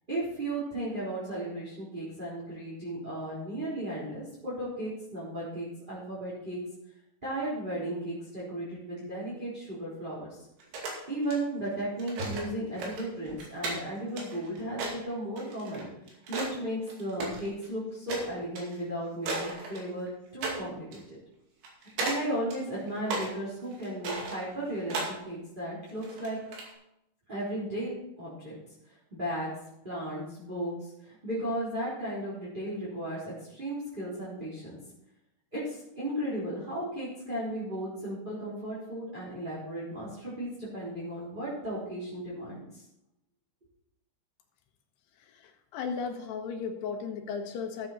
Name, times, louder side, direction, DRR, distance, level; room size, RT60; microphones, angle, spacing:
voice 1, 0.1-6.6 7.2-10.5 11.1-15.9 16.3-21.2 21.8-26.4 27.3-28.6 28.9-29.5 29.8-34.8 35.5-42.8, right 1 dB, 10° right, -8 dB, 3.4 m, -35 dB
sound 1, 10.6-11.4 12.0-12.5 12.7-16.6 16.8-17.7 18.1-18.3 18.6-18.8 19.2-20.1 20.4-20.6 20.9-21.0 21.6-22.2 22.5-23.3 23.7-25.1 25.9-26.7, right 2 dB, 75° right, 4.4 m, -35 dB
voice 2, 45.1-47.9, left 5 dB, 80° left, 5 dB, 3.3 m, -36 dB
13.5 x 8.5 x 4.3 m, 0.83 s
omnidirectional pair, 4.8 m